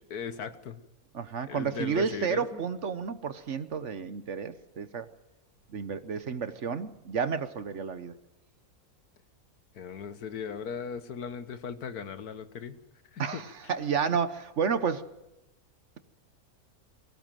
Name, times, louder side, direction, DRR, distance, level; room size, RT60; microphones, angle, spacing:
voice 1, 0.1-0.8 1.5-2.6 9.7-12.8 13.1-13.4, left 7 dB, 80° left, 11 dB, 1.7 m, -38 dB
voice 2, 1.1-5.1 5.7-8.1 13.2-15.1, right 6 dB, 55° right, 12 dB, 1.2 m, -31 dB
23.0 x 17.0 x 7.6 m, 0.95 s
omnidirectional pair, 1.6 m